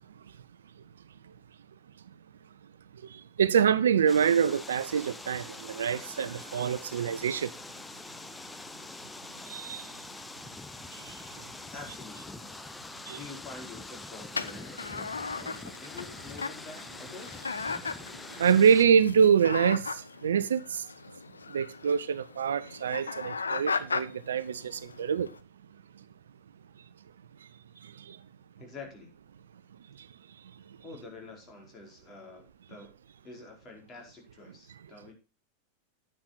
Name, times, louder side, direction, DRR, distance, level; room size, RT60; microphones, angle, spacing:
voice 1, 3.0-7.5 9.4-9.9 10.9-11.2 13.1-13.2 18.4-20.9 21.5-25.3 27.8-28.2 30.0-30.1, right 7 dB, 65° right, 0.6 m, -26 dB
sound 1, 4.1-18.8, left 2 dB, 10° left, 0.8 m, -44 dB
voice 2, 11.7-12.6 13.1-17.5 28.6-29.1 30.8-32.9 33.2-35.1, left 3 dB, 25° left, 4.6 m, -47 dB
sound 2, 14.3-25.4, left 4 dB, 75° left, 0.7 m, -37 dB
10.0 x 9.6 x 4.0 m
figure-of-eight pair, 90°, 0 cm